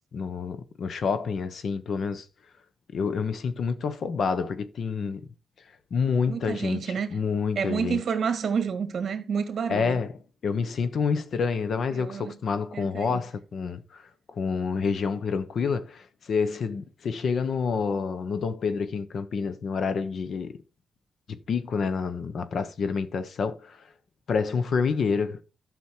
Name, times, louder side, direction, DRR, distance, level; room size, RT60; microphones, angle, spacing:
voice 1, 0.1-2.3 2.9-5.2 5.9-8.0 9.7-10.1 10.4-14.0 14.3-20.6 21.5-23.8 24.3-25.4, left 5 dB, 55° left, 1.0 m, -28 dB
voice 2, 6.3-7.1 7.5-10.0 11.9-12.4 12.7-13.2, right 6 dB, 55° right, 1.8 m, -29 dB
11.5 x 6.3 x 4.5 m
wide cardioid pair, 165°, 0 cm